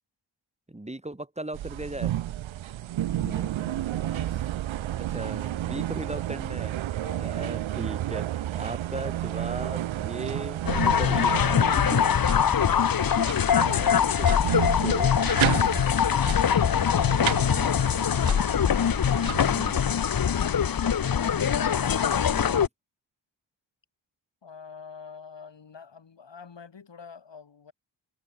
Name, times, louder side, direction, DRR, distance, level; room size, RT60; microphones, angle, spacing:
voice 1, 0.7-2.1 5.0-6.8 7.2-10.6 10.9-12.0 13.2-15.1 19.2-19.8 22.3-22.7, right 1 dB, 15° right, 2.6 m, -38 dB
sound 1, 1.5-19.4, right 13 dB, 75° right, 0.6 m, -32 dB
voice 2, 3.0-4.6 7.0-7.6 11.8-12.3 13.3-14.0 16.3-19.1 20.3-21.9 24.4-27.7, left 6 dB, 60° left, 3.9 m, -47 dB
sound 2, 10.7-22.7, left 8 dB, 45° left, 0.9 m, -23 dB
cardioid pair, 60°, 48 cm